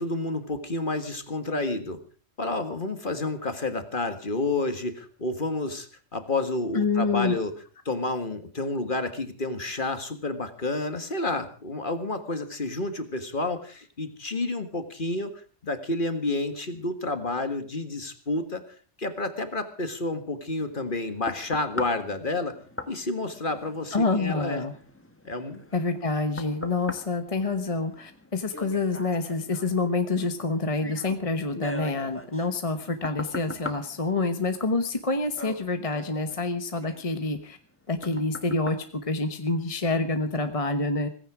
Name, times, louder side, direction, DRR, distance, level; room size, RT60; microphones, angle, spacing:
voice 1, 0.0-2.0 2.4-7.5 7.9-18.6 19.0-22.6 22.9-24.7 25.2-25.6, left 2 dB, 50° left, 9 dB, 1.9 m, -30 dB
voice 2, 6.7-7.3 23.9-24.7 25.7-37.6 37.9-41.1, left 3 dB, 30° left, 8 dB, 1.2 m, -27 dB
sound 1, 20.6-39.9 40.4-40.5, left 1 dB, 10° left, 1.5 m, -42 dB
17.5 x 16.0 x 4.9 m, 0.40 s
omnidirectional pair, 1.2 m